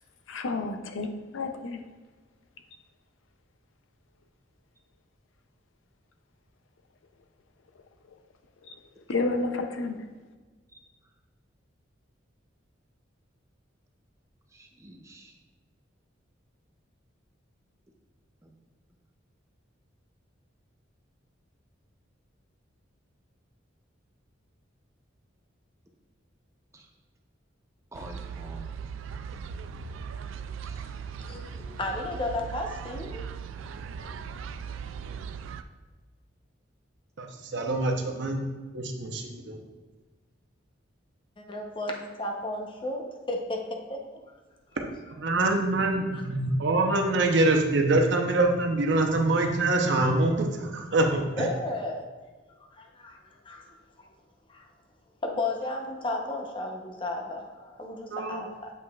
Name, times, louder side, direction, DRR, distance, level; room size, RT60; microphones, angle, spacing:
voice 1, 0.3-1.8 8.6-8.7 9.1-10.0, left 3 dB, 80° left, 6 dB, 0.6 m, -30 dB
voice 2, 14.5-15.3 18.4-18.5 26.7-26.9 27.9-28.7 30.6-31.0, right 1 dB, 15° right, 2 dB, 0.6 m, -47 dB
sound 1, 27.9-35.6, right 6 dB, 85° right, 0.3 m, -38 dB
voice 3, 31.3-33.3 34.0-34.2 41.4-44.0 46.1-46.2 51.4-52.1 52.7-54.1 54.5-54.7 55.2-58.7, left 2 dB, 25° left, 1 dB, 0.8 m, -34 dB
voice 4, 37.2-38.4 38.7-39.6 45.2-51.5 58.1-58.5, right 2 dB, 65° right, 3 dB, 0.8 m, -25 dB
7.8 x 5.3 x 2.4 m, 1.3 s
head